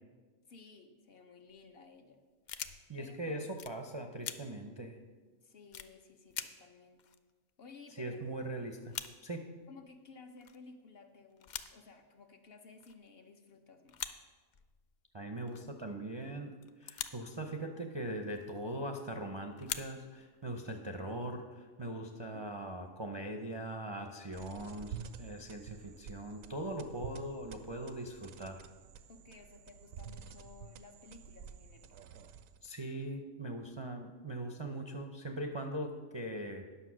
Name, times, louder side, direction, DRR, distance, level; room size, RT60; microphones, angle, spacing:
voice 1, 0.5-2.2 2.5-3.4 5.4-7.0 7.6-8.2 9.7-14.2 22.3-22.5 29.1-32.0, left 4 dB, 55° left, 5 dB, 0.9 m, -56 dB
sound 1, 1.5-1.7 2.4-3.1 3.6-3.7 4.2-4.4 4.9-5.0 5.7-5.9 6.3-6.5 6.7-6.8 7.0-8.0 8.3-8.4 8.7-9.1 9.9-10.0 10.4-10.6 11.3-11.7 12.8-13.1 13.9-14.1 14.4-15.0 15.5-15.8 16.6-17.3 18.4-18.6 19.5-20.3, left 8 dB, 70° left, 0.4 m, -43 dB
voice 2, 2.9-5.0 8.0-8.9 9.2-9.4 15.1-16.5 16.8-28.6 32.6-36.7, right 1 dB, 35° right, 3 dB, 0.5 m, -41 dB
sound 2, 24.3-32.7, right 7 dB, 90° right, 1.0 m, -50 dB
9.9 x 6.5 x 6.1 m, 1.4 s
omnidirectional pair, 1.4 m